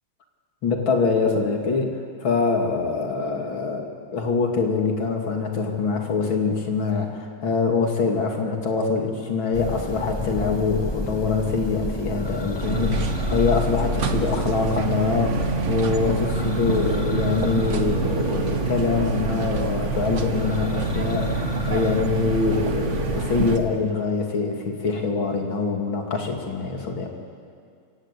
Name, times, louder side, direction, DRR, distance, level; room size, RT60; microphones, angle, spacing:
voice 1, 0.6-1.9 2.2-3.9 4.1-21.4 21.7-27.1, left 4 dB, 75° left, 3 dB, 3.1 m, -24 dB
Church bell, 9.5-23.8, left 1 dB, 20° left, 0.7 m, -31 dB
sound 1, 12.6-23.6, right 5 dB, 45° right, 1.2 m, -27 dB
28.0 x 16.5 x 8.4 m, 2.3 s
omnidirectional pair, 2.2 m